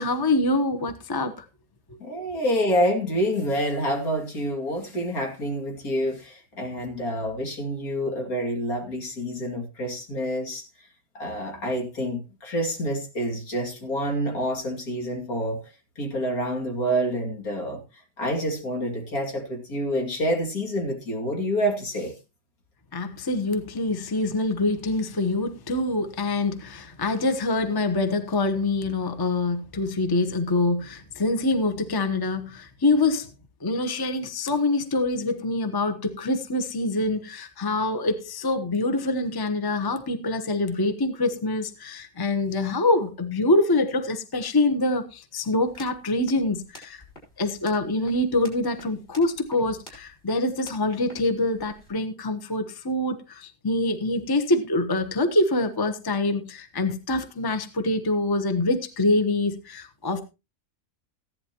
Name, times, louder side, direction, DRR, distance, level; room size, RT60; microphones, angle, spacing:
voice 1, 0.0-1.4 1.9-2.0 22.9-33.3 33.6-47.0 47.4-60.2, left 2 dB, 15° left, 0.9 m, -25 dB
voice 2, 2.0-10.9 11.1-22.1, equal, 70° left, 3.1 m, -28 dB
sound 1, 45.6-51.9, left 1 dB, 40° left, 5.1 m, -51 dB
15.5 x 11.0 x 3.0 m
omnidirectional pair, 1.6 m